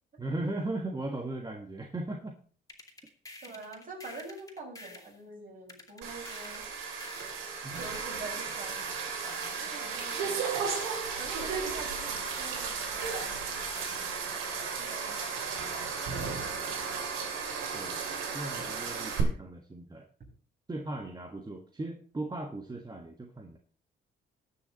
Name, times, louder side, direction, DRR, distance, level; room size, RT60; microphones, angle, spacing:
voice 1, 0.2-2.4 7.6-7.8 17.7-18.0 18.3-20.1 20.7-23.6, right 2 dB, 20° right, 3 dB, 1.5 m, -37 dB
sound 1, 2.7-5.2 5.7-8.1 8.7-11.1 11.7-14.1, left 2 dB, 15° left, 2.5 m, -49 dB
voice 2, 3.4-6.7 7.8-10.4 11.2-16.2, right 3 dB, 45° right, -2 dB, 7.1 m, -46 dB
sound 2, 6.0-19.2, right 5 dB, 90° right, 3.0 m, -35 dB
19.0 x 6.4 x 4.0 m, 0.43 s
cardioid pair, 90°, 20 cm